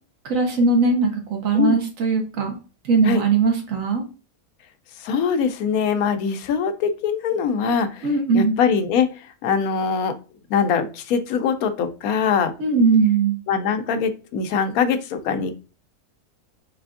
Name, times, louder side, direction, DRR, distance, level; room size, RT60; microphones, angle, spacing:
voice 1, 0.2-2.6 2.8-4.0 8.0-8.6 12.6-13.4, right 4 dB, 65° right, 3 dB, 1.3 m, -19 dB
voice 2, 5.0-8.1 8.3-10.2 10.5-12.5 13.5-15.5, left 6 dB, 85° left, 8 dB, 1.0 m, -22 dB
3.8 x 3.3 x 2.4 m, 0.34 s
omnidirectional pair, 1.5 m